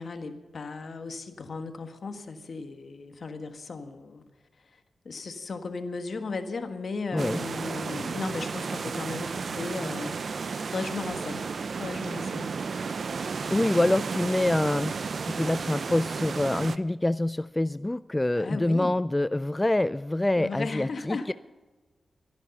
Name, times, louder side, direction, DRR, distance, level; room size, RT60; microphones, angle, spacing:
voice 1, 0.0-4.2 5.0-11.4 11.8-12.5 18.3-19.0 20.4-21.3, left 4 dB, 65° left, 8 dB, 1.4 m, -36 dB
voice 2, 7.1-7.5 13.5-21.3, left 1 dB, 20° left, 15 dB, 0.3 m, -26 dB
sound 1, 7.2-16.8, right 5 dB, 65° right, 0.6 m, -33 dB
13.0 x 11.0 x 6.7 m, 1.3 s
cardioid pair, 60°, 0 cm